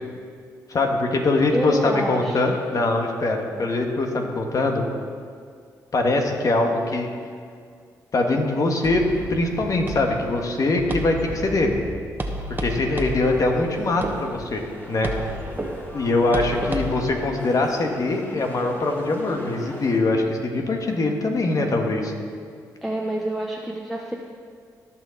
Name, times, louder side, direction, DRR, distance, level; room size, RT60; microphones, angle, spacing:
voice 1, 0.7-4.8 5.9-7.1 8.1-9.0 9.3-11.7 12.6-14.6 14.9-15.1 15.9-22.1, left 2 dB, 55° left, 2 dB, 1.7 m, -22 dB
voice 2, 1.3-2.6 4.1-4.3 22.8-24.1, right 1 dB, ahead, -2 dB, 1.0 m, -28 dB
sound 1, 8.8-17.1, right 1 dB, 25° right, 1.3 m, -32 dB
sound 2, 13.2-20.0, equal, 25° left, 2.9 m, -40 dB
18.0 x 6.1 x 4.1 m, 2.1 s
supercardioid pair, 55°, 7 cm